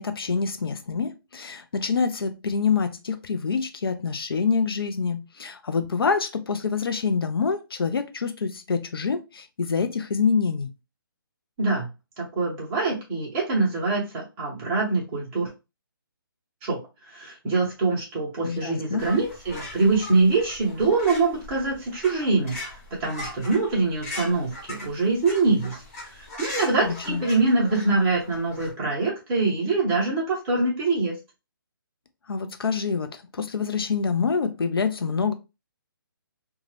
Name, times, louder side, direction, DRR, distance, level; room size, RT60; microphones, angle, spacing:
voice 1, 0.0-10.7 18.4-19.1 26.8-27.2 32.3-35.3, left 5 dB, 80° left, 0.5 m, -26 dB
voice 2, 12.2-15.5 16.6-16.8 17.1-22.7 23.0-25.8 26.0-31.1, right 3 dB, 15° right, 0.9 m, -24 dB
sound 1, 19.0-28.7, left 2 dB, 35° left, 1.3 m, -40 dB
2.5 x 2.3 x 3.2 m
hypercardioid pair, 165°, 12 cm